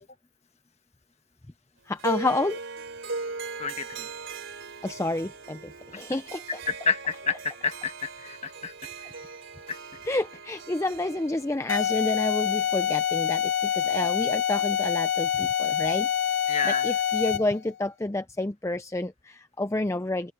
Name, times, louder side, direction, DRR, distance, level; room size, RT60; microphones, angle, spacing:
voice 1, 1.9-2.6 4.8-6.4 10.0-16.1 16.6-20.3, left 2 dB, 15° left, 0.4 m, -29 dB
Harp, 2.0-13.3, right 4 dB, 65° right, 3.2 m, -39 dB
voice 2, 3.6-4.1 6.7-8.7 9.7-9.8 16.5-16.8, left 5 dB, 30° left, 1.4 m, -29 dB
sound 1, 11.7-17.6, left 9 dB, 70° left, 2.2 m, -26 dB
open air
head